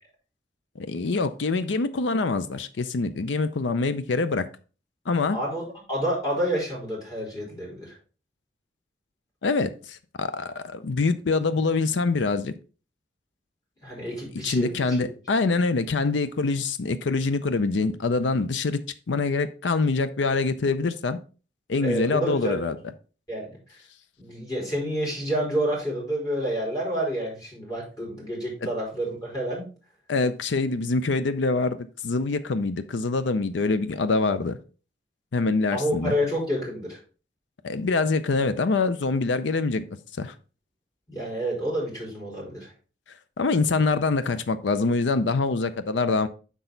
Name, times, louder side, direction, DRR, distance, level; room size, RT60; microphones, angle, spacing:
voice 1, 0.8-4.5 5.1-5.4 9.4-12.5 14.4-18.8 19.1-21.2 21.7-22.8 30.1-31.8 32.0-34.6 35.3-36.1 37.6-39.8 40.2-40.3 43.4-46.3, left 3 dB, 80° left, 0.5 m, -25 dB
voice 2, 5.3-5.6 5.9-7.9 13.8-15.0 21.8-22.6 23.3-23.6 24.2-29.7 35.7-37.0 41.1-42.7, equal, 20° left, 3.8 m, -29 dB
6.8 x 6.1 x 3.9 m
head